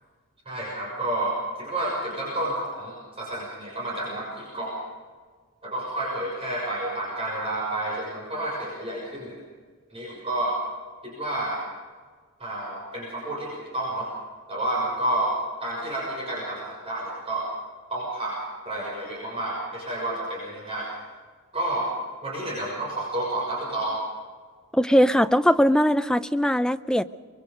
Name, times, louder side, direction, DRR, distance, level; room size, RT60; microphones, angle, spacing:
voice 1, 0.4-4.8 5.6-9.4 9.9-10.6 11.0-11.6 12.4-14.1 14.5-17.5 17.9-18.4 18.6-20.9 21.5-21.9 22.2-24.0, right 1 dB, 25° right, -4 dB, 6.3 m, -30 dB
voice 2, 24.7-27.0, equal, 5° left, 11 dB, 0.5 m, -20 dB
24.5 x 22.5 x 5.3 m, 1.5 s
head